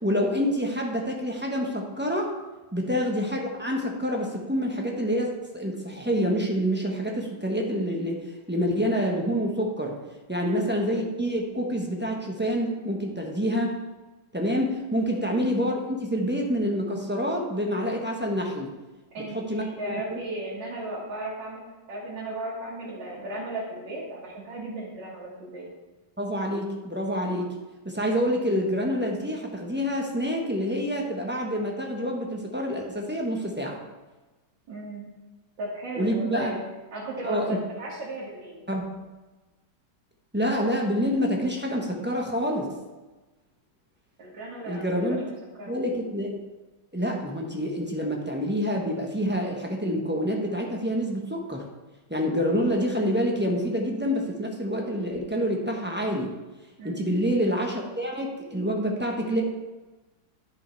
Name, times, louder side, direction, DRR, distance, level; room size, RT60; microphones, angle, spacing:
voice 1, 0.0-2.3 2.7-10.0 10.3-13.8 14.3-18.7 19.3-20.2 26.2-27.5 27.8-33.8 36.0-36.6 37.2-37.6 38.7-38.9 40.3-42.7 44.7-45.2 45.7-46.4 46.9-51.7 52.1-56.3 56.8-59.4, equal, 10° right, 0 dB, 0.8 m, -27 dB
voice 2, 19.1-21.6 21.9-25.7 34.7-35.0 35.6-36.6 36.9-38.6 44.2-45.7 56.8-57.1, right 2 dB, 90° right, -7 dB, 2.4 m, -36 dB
10.5 x 5.2 x 4.5 m, 1.2 s
omnidirectional pair, 1.9 m